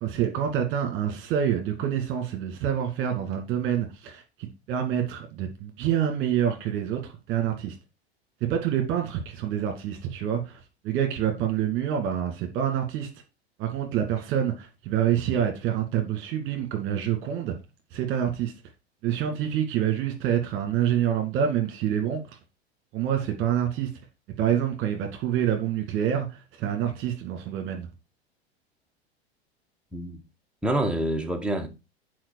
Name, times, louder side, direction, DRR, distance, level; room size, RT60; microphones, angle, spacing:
voice 1, 0.0-7.7 8.5-10.6 10.8-13.1 13.6-17.5 17.9-18.5 19.0-22.4 22.9-23.9 24.4-27.9, right 9 dB, 40° right, 2.2 m, -27 dB
voice 2, 30.6-31.7, right 1 dB, 5° right, 1.5 m, -27 dB
8.9 x 5.0 x 4.7 m
figure-of-eight pair, 90°, 32 cm